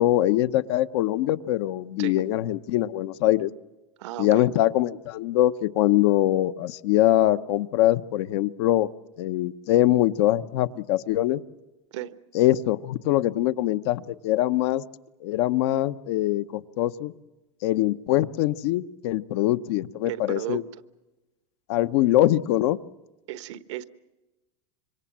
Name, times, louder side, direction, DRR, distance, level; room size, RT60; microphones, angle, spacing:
voice 1, 0.0-3.5 4.2-8.9 9.2-11.4 12.3-14.8 15.2-17.1 17.6-20.6 21.7-22.8, left 14 dB, 65° left, 13 dB, 0.9 m, -23 dB
voice 2, 2.0-2.3 4.0-4.5 11.9-12.2 20.1-20.6 23.3-23.9, right 14 dB, 80° right, 13 dB, 1.2 m, -34 dB
26.5 x 24.0 x 7.4 m, 1.1 s
supercardioid pair, 145°, 15 cm